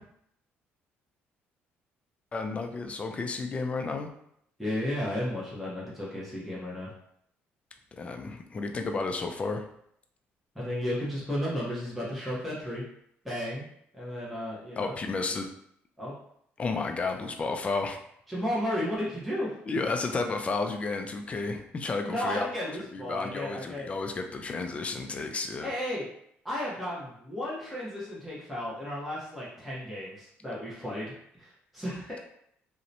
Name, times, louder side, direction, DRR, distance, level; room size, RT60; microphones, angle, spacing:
voice 1, 2.3-4.1 7.9-9.7 14.8-15.5 16.6-18.0 19.7-22.5 22.9-25.7, left 3 dB, 30° left, 5 dB, 0.3 m, -32 dB
voice 2, 4.6-6.9 10.5-12.8 13.2-13.6 13.9-14.9 16.0-16.1 18.3-19.5 22.1-23.9 25.6-26.1 26.4-32.2, left 1 dB, ahead, -8 dB, 0.7 m, -33 dB
2.7 x 2.1 x 2.6 m, 0.71 s
cardioid pair, 105°, 4 cm